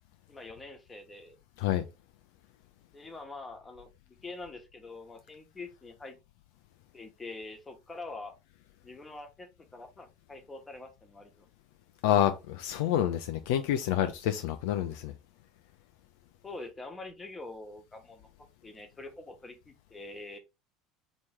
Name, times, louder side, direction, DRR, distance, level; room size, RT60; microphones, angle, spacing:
voice 1, 0.3-1.4 2.9-3.9 4.2-6.2 6.9-8.3 8.8-11.5 16.4-18.3 18.6-20.4, left 3 dB, 15° left, 1.1 m, -45 dB
voice 2, 12.0-15.1, left 11 dB, 60° left, 0.3 m, -28 dB
3.2 x 3.0 x 4.3 m
figure-of-eight pair, 65°, 0 cm